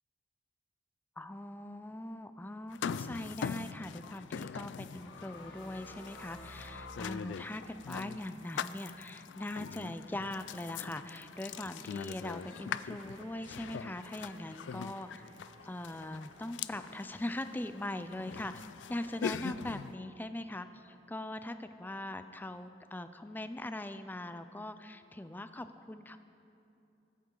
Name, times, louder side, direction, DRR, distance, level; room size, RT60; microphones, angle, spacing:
voice 1, 1.2-15.3 15.6-18.6 18.9-26.2, left 1 dB, 10° left, 10 dB, 0.4 m, -41 dB
sound 1, 2.7-19.9, left 7 dB, 90° left, 0.3 m, -42 dB
sound 2, 4.9-7.6, equal, 30° left, 1.6 m, -52 dB
sound 3, 11.3-22.7, right 2 dB, 30° right, 0.7 m, -64 dB
19.0 x 8.2 x 3.9 m, 2.7 s
head